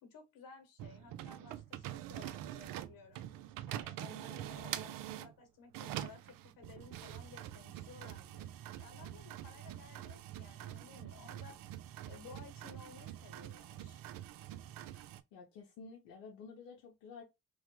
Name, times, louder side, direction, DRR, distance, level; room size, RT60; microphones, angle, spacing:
voice 1, 0.0-3.2 3.7-8.5 8.8-11.6 12.1-14.0, left 5 dB, 65° left, 1.2 m, -56 dB
sound 1, 0.8-5.3 5.7-15.2, right 12 dB, 65° right, 0.5 m, -45 dB
voice 2, 15.3-17.2, left 5 dB, 80° left, 0.8 m, -51 dB
3.1 x 2.0 x 3.0 m
supercardioid pair, 65°, 37 cm